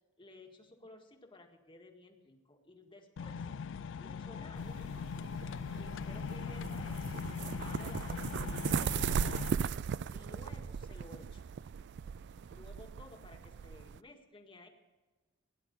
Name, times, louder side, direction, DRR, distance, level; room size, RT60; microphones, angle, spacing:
voice 1, 0.2-3.5 4.0-4.8 5.7-9.6 10.1-11.4 12.5-14.7, left 2 dB, 25° left, 3 dB, 1.8 m, -55 dB
sound 1, 3.2-9.5, left 6 dB, 70° left, 0.4 m, -40 dB
sound 2, 4.6-14.0, right 7 dB, 60° right, 0.3 m, -38 dB
16.5 x 10.5 x 5.2 m, 1.3 s
head